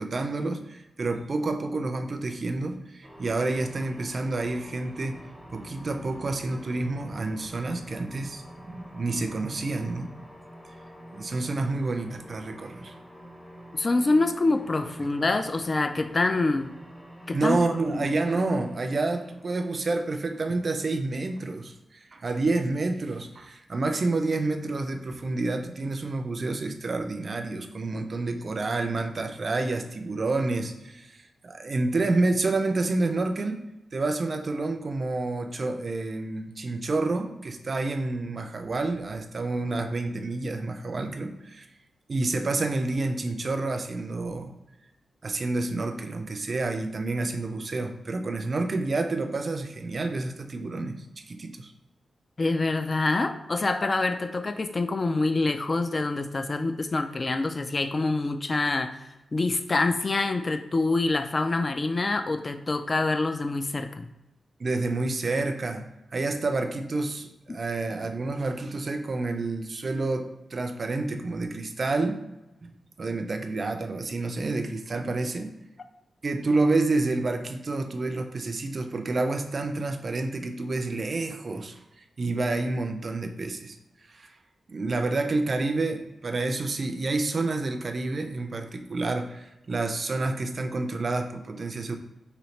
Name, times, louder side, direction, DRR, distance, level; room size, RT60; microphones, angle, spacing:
voice 1, 0.0-10.1 11.1-13.0 17.3-33.6 33.9-41.7 42.1-44.5 45.2-51.7 64.6-65.8 66.1-72.2 73.0-75.5 76.2-83.8 84.1-84.3 84.7-92.0, right 3 dB, 45° right, 6 dB, 0.4 m, -29 dB
sound 1, 3.0-21.3, equal, 10° left, 0.7 m, -48 dB
voice 2, 13.7-16.7 17.3-17.6 17.9-18.1 52.4-59.0 59.3-64.1 67.5-67.6, left 3 dB, 35° left, 8 dB, 0.3 m, -26 dB
4.0 x 2.8 x 3.2 m, 0.96 s
wide cardioid pair, 110°, 0 cm